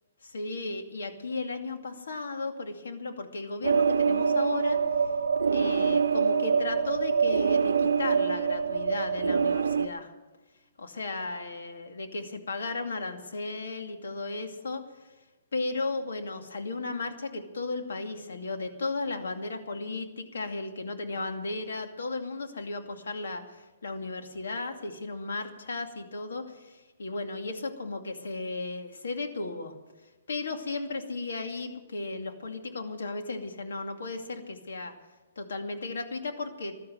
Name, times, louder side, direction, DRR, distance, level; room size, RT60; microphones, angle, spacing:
voice 1, 0.2-4.8 5.5-10.1 10.8-14.8 15.5-29.7 30.3-34.9 35.4-36.8, left 3 dB, 80° left, 5 dB, 2.4 m, -35 dB
sound 1, 3.6-9.9, right 6 dB, 85° right, 0.7 m, -25 dB
15.5 x 12.0 x 7.8 m, 1.2 s
hypercardioid pair, 135°, 0 cm